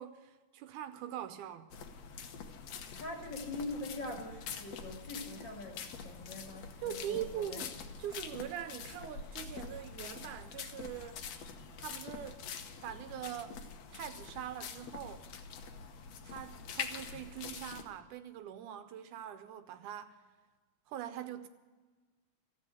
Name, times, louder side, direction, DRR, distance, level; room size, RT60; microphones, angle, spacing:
voice 1, 0.0-1.7 6.3-6.4 6.8-11.2 11.8-12.5 12.8-13.6 13.9-15.3 16.3-20.2 20.9-21.5, right 10 dB, 80° right, 2.1 m, -43 dB
sound 1, 1.7-17.8, left 6 dB, 65° left, 2.0 m, -45 dB
voice 2, 2.9-7.6, left 2 dB, 40° left, 2.1 m, -43 dB
14.0 x 8.4 x 9.2 m
omnidirectional pair, 3.7 m